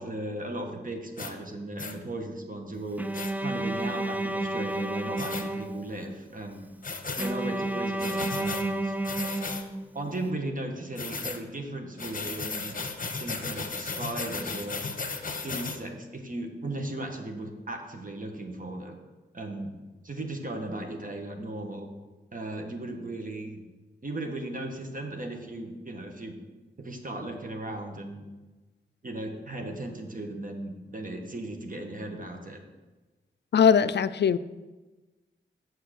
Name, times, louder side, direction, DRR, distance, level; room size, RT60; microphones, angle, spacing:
voice 1, 0.0-3.1 3.4-6.7 7.1-8.9 9.9-12.8 13.2-14.8 15.4-19.0 19.3-19.7 20.0-21.9 22.3-23.6 24.0-26.3 26.8-28.2 29.0-32.6, right 1 dB, 45° right, 3 dB, 1.5 m, -36 dB
sound 1, 1.2-1.3 1.8-2.0 3.1-3.3 5.2-5.5 6.8-7.3 8.0-8.6 9.0-9.6 11.0-11.4 12.0-15.8, left 4 dB, 45° left, 1.0 m, -35 dB
Bowed string instrument, 3.0-6.2 7.2-10.1, right 1 dB, 10° right, 0.5 m, -31 dB
voice 2, 33.5-34.4, left 7 dB, 60° left, 14 dB, 0.4 m, -20 dB
6.7 x 6.6 x 6.4 m, 1.2 s
cardioid pair, 55°, 20 cm